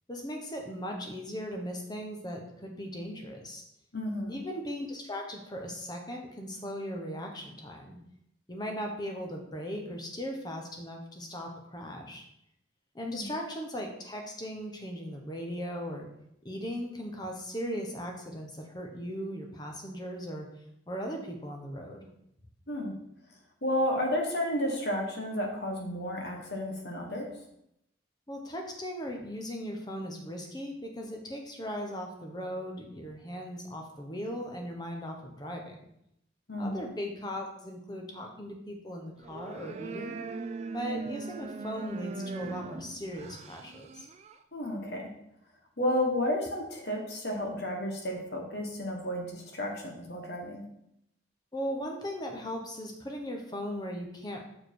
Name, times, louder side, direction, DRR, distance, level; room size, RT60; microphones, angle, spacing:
voice 1, 0.1-3.6 4.3-8.0 8.5-12.2 12.9-16.1 16.4-20.5 20.9-22.1 28.3-35.7 36.6-40.2 40.7-44.1 51.5-54.4, equal, 20° left, 2 dB, 1.0 m, -38 dB
voice 2, 3.9-4.4 13.1-13.3 22.7-22.9 23.6-27.3 36.5-36.9 44.5-45.0 45.8-50.6, left 1 dB, 60° left, 1 dB, 1.4 m, -32 dB
sound 1, 39.2-44.4, right 4 dB, 35° right, 0.3 m, -40 dB
6.6 x 4.8 x 4.6 m, 0.77 s
head